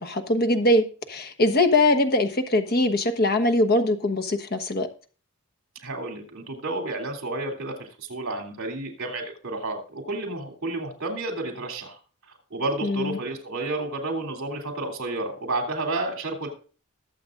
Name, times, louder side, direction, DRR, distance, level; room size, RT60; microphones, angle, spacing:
voice 1, 0.0-4.9 12.8-13.2, left 1 dB, 45° left, 8 dB, 1.2 m, -22 dB
voice 2, 5.8-12.0 12.5-16.5, right 2 dB, 60° right, 1 dB, 3.0 m, -31 dB
20.5 x 7.7 x 2.6 m, 0.39 s
head